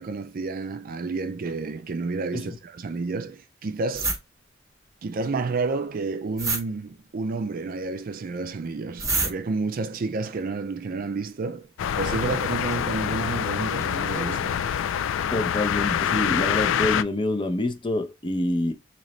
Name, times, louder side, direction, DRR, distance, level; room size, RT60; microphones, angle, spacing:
voice 1, 0.0-4.1 5.0-11.7 12.0-14.6, right 3 dB, 45° right, 0.4 m, -30 dB
sound 1, 3.9-4.2 6.4-6.6 9.0-9.3 12.3-13.1 13.8-14.0 14.5-14.6, right 3 dB, 15° right, 0.8 m, -27 dB
sound 2, 11.8-17.0, left 9 dB, 70° left, 0.3 m, -26 dB
voice 2, 15.3-18.7, left 1 dB, 25° left, 0.6 m, -26 dB
4.0 x 2.9 x 3.1 m
head